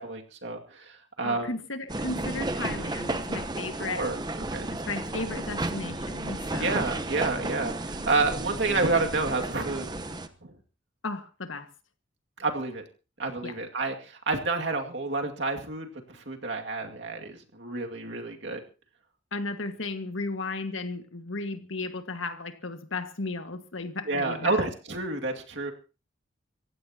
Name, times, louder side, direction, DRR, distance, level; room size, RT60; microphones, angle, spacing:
voice 1, 0.0-1.5 3.8-4.2 4.5-4.7 6.6-9.9 10.4-10.5 12.4-12.8 13.2-18.6 24.0-25.7, right 3 dB, 65° right, 3 dB, 2.3 m, -29 dB
voice 2, 1.2-4.1 4.7-6.9 11.0-11.7 13.4-13.6 19.3-24.6, left 3 dB, 85° left, 8 dB, 1.8 m, -35 dB
sound 1, 1.9-10.3, right 2 dB, 20° right, 1.0 m, -33 dB
26.5 x 15.5 x 2.9 m, 0.34 s
head